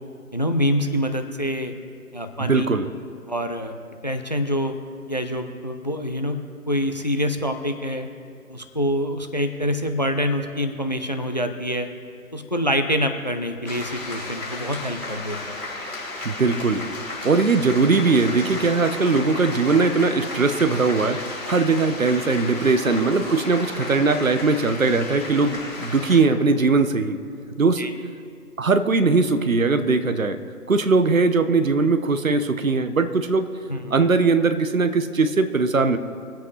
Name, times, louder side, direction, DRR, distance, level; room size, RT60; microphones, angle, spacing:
voice 1, 0.3-1.7 2.1-2.7 3.3-3.7 4.0-4.7 5.1-6.4 6.7-8.1 8.5-11.9 12.3-15.6 27.8-27.9 33.7-34.0, equal, 30° left, 8 dB, 0.6 m, -25 dB
voice 2, 2.4-2.9 16.2-16.8 17.2-21.2 21.5-27.2 27.6-27.9 28.6-30.4 30.7-33.5 33.9-36.0, right 4 dB, 60° right, 9 dB, 1.0 m, -20 dB
sound 1, 13.6-26.2, left 2 dB, 5° left, 1.7 m, -33 dB
24.0 x 8.1 x 3.3 m, 2.5 s
figure-of-eight pair, 155°, 46 cm